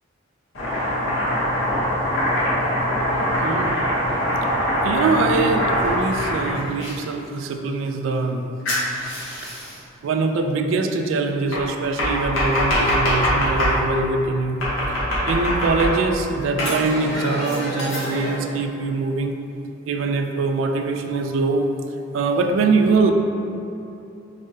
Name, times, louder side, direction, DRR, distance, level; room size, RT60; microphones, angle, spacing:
Domestic sounds home sounds, 0.5-6.9 8.7-9.8 11.5-13.8 14.6-16.2 16.6-18.4, equal, 80° left, 1.1 m, -23 dB
voice 1, 3.4-3.9 4.8-8.4 9.4-9.6 10.0-14.6 15.3-19.4 19.9-21.7 22.1-23.1, right 3 dB, 75° right, 5 dB, 0.3 m, -23 dB
4.9 x 2.1 x 3.2 m, 2.8 s
head